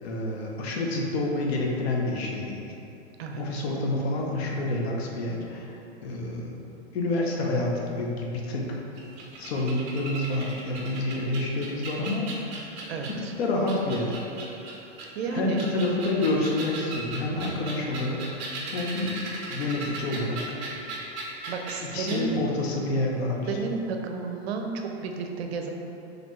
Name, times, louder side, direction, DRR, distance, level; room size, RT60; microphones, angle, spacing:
voice 1, 0.0-2.7 3.4-5.7 6.0-6.6 6.9-8.8 9.4-12.3 13.4-14.2 15.3-19.1 19.5-20.4 21.9-23.6, left 2 dB, 70° left, -1 dB, 0.8 m, -28 dB
voice 2, 3.2-3.6 12.9-13.3 15.1-15.6 21.5-22.3 23.5-25.7, right 5 dB, 70° right, 3 dB, 0.6 m, -32 dB
sound 1, 9.0-13.3 13.7-15.1 15.5-21.8 22.1-22.2, right 3 dB, 35° right, 0.7 m, -37 dB
4.1 x 3.2 x 3.1 m, 2.9 s
supercardioid pair, 150°, 33 cm